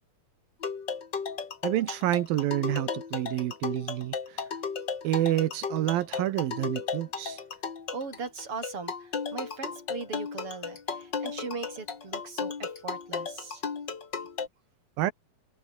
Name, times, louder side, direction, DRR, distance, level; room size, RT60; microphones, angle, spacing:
sound 1, 0.6-14.5, left 5 dB, 35° left, 2.5 m, -35 dB
voice 1, 1.6-4.4 5.0-7.4 15.0-15.1, right 14 dB, 85° right, 3.0 m, -28 dB
voice 2, 7.9-13.6, right 4 dB, 40° right, 5.6 m, -39 dB
omnidirectional pair, 4.0 m